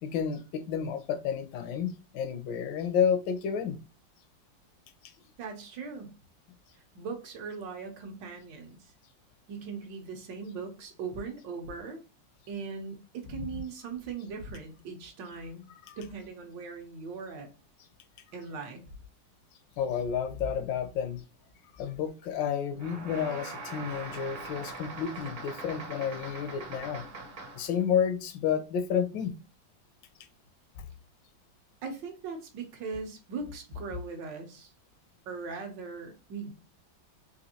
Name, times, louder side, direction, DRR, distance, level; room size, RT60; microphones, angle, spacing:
voice 1, 0.0-3.8 13.4-13.5 15.9-16.0 19.8-21.2 21.8-27.0 27.5-29.3, left 8 dB, 80° left, 1.3 m, -30 dB
voice 2, 5.4-6.1 6.9-8.9 9.5-12.0 12.5-15.7 16.0-17.5 18.3-18.9 31.8-34.7 35.3-36.5, right 4 dB, 75° right, 1.5 m, -39 dB
sound 1, 22.8-27.8, right 3 dB, 55° right, 1.1 m, -42 dB
4.2 x 2.5 x 2.7 m
omnidirectional pair, 2.0 m